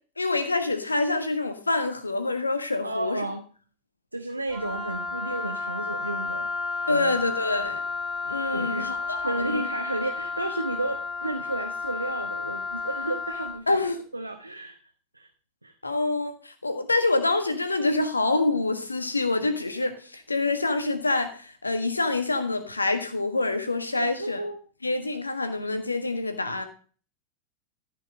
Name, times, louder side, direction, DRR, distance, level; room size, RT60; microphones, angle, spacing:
voice 1, 0.2-3.2 6.9-7.8 8.2-9.7 13.7-14.0 15.8-24.4 24.8-26.6, left 2 dB, 80° left, 8 dB, 1.5 m, -26 dB
voice 2, 2.8-3.4 4.1-6.5 6.9-7.1 8.5-8.9 9.2-13.8 14.1-14.8 15.1-15.3 15.6-15.7 24.0-24.6, right 2 dB, 85° right, 4 dB, 0.9 m, -32 dB
Wind instrument woodwind instrument, 4.5-13.6, left 4 dB, 10° right, 3.9 m, -32 dB
14.0 x 5.6 x 5.3 m, 0.42 s
figure-of-eight pair, 90°, 0 cm